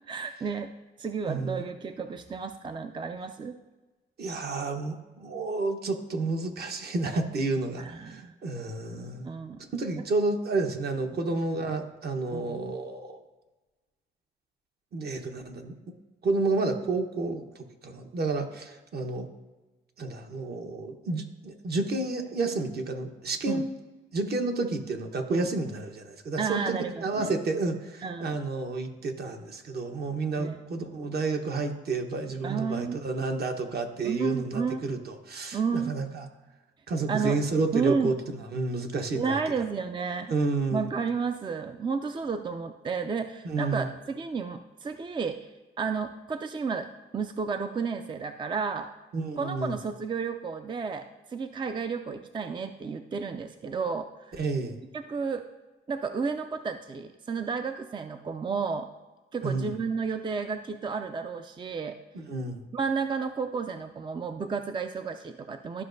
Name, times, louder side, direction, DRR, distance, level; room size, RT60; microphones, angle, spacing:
voice 1, 0.1-0.7 1.0-3.6 7.8-8.3 9.2-9.6 12.3-12.6 23.5-23.6 25.3-25.5 26.4-27.3 28.0-28.4 30.4-30.6 32.4-33.0 34.0-34.8 35.5-35.9 37.1-37.4 37.7-38.1 39.1-40.3 40.7-45.5 45.8-46.9 47.1-48.9 49.4-54.4 54.9-55.4 55.9-58.9 59.3-62.0 62.7-65.8, right 5 dB, 25° right, 8 dB, 0.4 m, -32 dB
voice 2, 1.3-1.6 4.2-9.3 9.7-13.2 14.9-15.7 16.2-19.3 20.0-23.6 24.1-36.3 36.9-39.4 40.3-40.9 43.4-43.9 49.1-49.7 54.4-54.8 59.4-59.7 62.1-62.6, right 3 dB, 55° right, 4 dB, 1.1 m, -30 dB
12.5 x 4.9 x 2.6 m, 1.2 s
cardioid pair, 90°, 20 cm